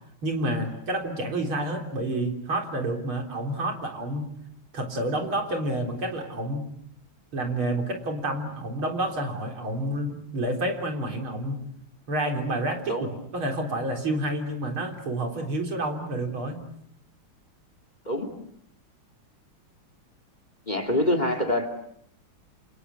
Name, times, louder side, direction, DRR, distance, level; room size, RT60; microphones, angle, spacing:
voice 1, 0.2-4.3 4.7-6.7 7.3-11.6 12.1-13.1 13.3-16.6, right 1 dB, 75° right, 3 dB, 4.6 m, -29 dB
voice 2, 20.7-21.7, left 1 dB, 20° left, 9 dB, 2.6 m, -25 dB
28.5 x 28.5 x 7.0 m, 0.69 s
omnidirectional pair, 2.3 m